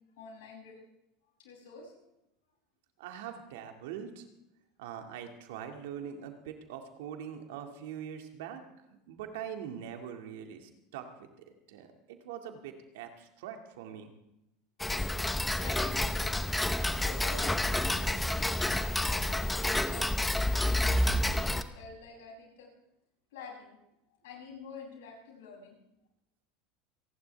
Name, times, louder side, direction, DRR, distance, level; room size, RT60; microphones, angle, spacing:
voice 1, 0.2-0.8 1.4-1.9 15.1-16.3 17.0-22.7 23.3-23.8 24.2-25.7, left 5 dB, 80° left, -2 dB, 7.7 m, -48 dB
voice 2, 3.0-4.3 4.8-8.6 9.1-14.1, right 8 dB, 75° right, 4 dB, 2.2 m, -43 dB
Tick-tock, 14.8-21.6, left 1 dB, 10° left, 1.0 m, -29 dB
29.0 x 11.5 x 3.5 m, 0.88 s
supercardioid pair, 100°, 0 cm